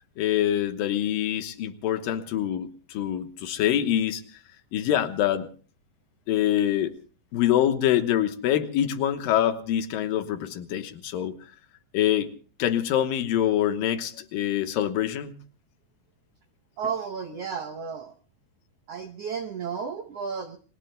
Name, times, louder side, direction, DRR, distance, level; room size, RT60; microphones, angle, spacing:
voice 1, 0.2-4.2 4.7-5.5 6.3-7.0 7.3-11.4 11.9-12.3 12.6-15.3, left 11 dB, 80° left, 9 dB, 2.8 m, -25 dB
voice 2, 16.8-18.2 18.9-20.6, right 6 dB, 75° right, 5 dB, 1.4 m, -33 dB
29.5 x 21.5 x 2.2 m, 0.40 s
omnidirectional pair, 4.0 m